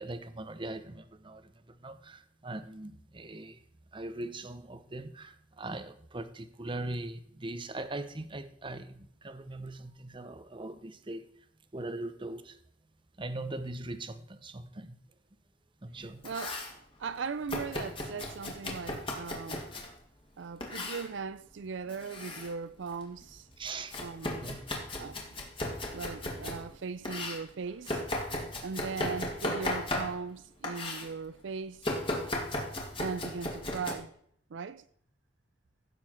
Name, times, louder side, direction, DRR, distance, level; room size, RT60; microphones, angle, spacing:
voice 1, 0.0-3.6 3.9-11.3 11.7-12.6 13.2-15.0 15.8-16.2 23.6-24.0 24.3-24.6, right 2 dB, 25° right, 0.8 m, -40 dB
Domestic sounds home sounds, 16.0-16.8 17.5-19.9 20.6-21.1 21.9-22.5 22.9-26.6 27.0-30.4 30.6-31.1 31.8-33.9, left 1 dB, 30° left, 2.2 m, -36 dB
voice 2, 16.2-16.6 17.0-19.6 20.4-23.5 24.0-24.4 25.0-25.2 25.9-28.0 28.6-32.0 33.0-34.1 34.5-34.8, right 5 dB, 70° right, 0.4 m, -39 dB
16.0 x 7.1 x 4.4 m
head